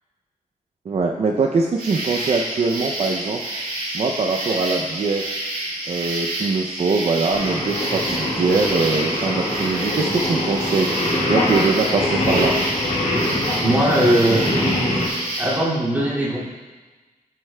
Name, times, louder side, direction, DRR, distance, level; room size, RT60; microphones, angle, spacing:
voice 1, 0.9-3.4 3.9-5.3 5.9-10.9 11.3-12.5, right 4 dB, 45° right, 1 dB, 0.5 m, -22 dB
sound 1, 1.8-15.6, right 1 dB, 70° right, 1.9 m, -29 dB
Singing, 7.3-15.1, left 1 dB, 55° left, 1.6 m, -23 dB
voice 2, 13.5-14.5 15.4-16.4, right 1 dB, 15° right, -9 dB, 2.3 m, -19 dB
9.4 x 7.8 x 2.2 m, 1.3 s
wide cardioid pair, 150°, 14 cm